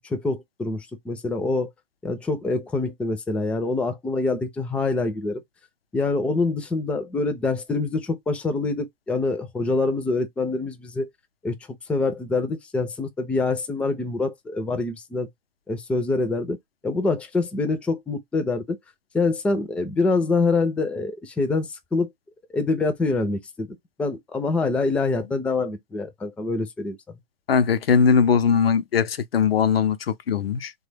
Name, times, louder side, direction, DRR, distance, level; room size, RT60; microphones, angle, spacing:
voice 1, 0.0-1.7 2.0-5.4 5.9-11.1 11.4-11.6 11.9-15.3 15.7-16.6 16.8-18.8 19.1-22.1 22.5-23.7 24.0-27.0, left 3 dB, 5° left, 0.4 m, -25 dB
voice 2, 27.5-30.7, left 6 dB, 90° left, 0.6 m, -20 dB
3.4 x 2.3 x 3.3 m
hypercardioid pair, 120°, 29 cm